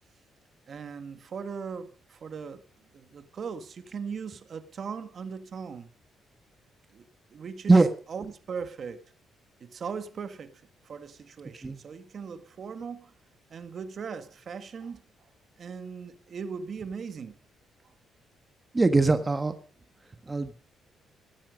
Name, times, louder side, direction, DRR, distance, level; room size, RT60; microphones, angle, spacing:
voice 1, 0.7-2.6 2.9-5.9 6.9-7.0 7.3-7.8 8.1-9.0 9.6-13.1 13.5-15.0 15.6-17.4, right 6 dB, 50° right, 1.9 m, -39 dB
voice 2, 18.7-19.5 20.3-20.5, right 3 dB, 20° right, 1.5 m, -21 dB
16.5 x 13.5 x 5.2 m
cardioid pair, 90°, 0 cm